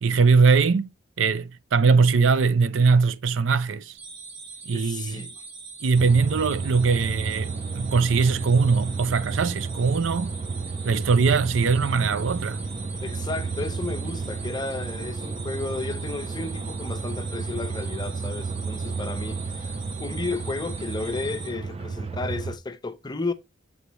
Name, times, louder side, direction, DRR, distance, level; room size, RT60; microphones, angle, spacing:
voice 1, 0.0-0.9 1.2-4.0 4.7-5.3 5.8-10.4 10.8-12.6, right 4 dB, 80° right, 0.5 m, -21 dB
sound 1, 4.0-21.5, right 4 dB, 50° right, 1.8 m, -42 dB
voice 2, 4.7-5.3 13.0-23.3, left 3 dB, 20° left, 0.6 m, -33 dB
sound 2, 6.0-22.6, right 4 dB, 30° right, 0.5 m, -32 dB
8.3 x 4.2 x 3.0 m
head